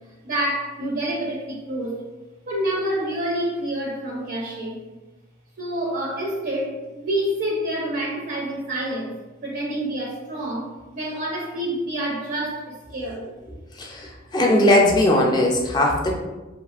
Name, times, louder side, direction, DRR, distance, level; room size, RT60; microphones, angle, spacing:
voice 1, 0.2-2.0 2.5-4.8 5.6-13.3, right 1 dB, 50° right, -3 dB, 0.4 m, -28 dB
voice 2, 13.7-16.1, left 1 dB, 20° left, -1 dB, 0.4 m, -19 dB
2.9 x 2.3 x 2.4 m, 1.1 s
head